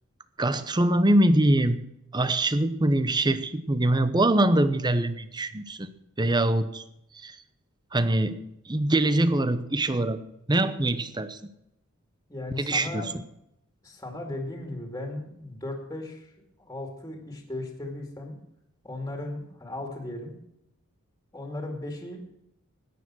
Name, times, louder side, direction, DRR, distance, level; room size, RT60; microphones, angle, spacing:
voice 1, 0.4-1.8 2.1-5.9 6.2-6.8 7.1-7.4 7.9-10.2 10.5-11.4 12.6-13.1, right 1 dB, 20° right, 12 dB, 0.8 m, -23 dB
voice 2, 12.3-13.1 13.8-16.3 16.6-18.4 18.8-20.3 21.3-22.2, left 2 dB, 15° left, 2 dB, 2.5 m, -36 dB
14.0 x 9.7 x 6.3 m, 0.81 s
head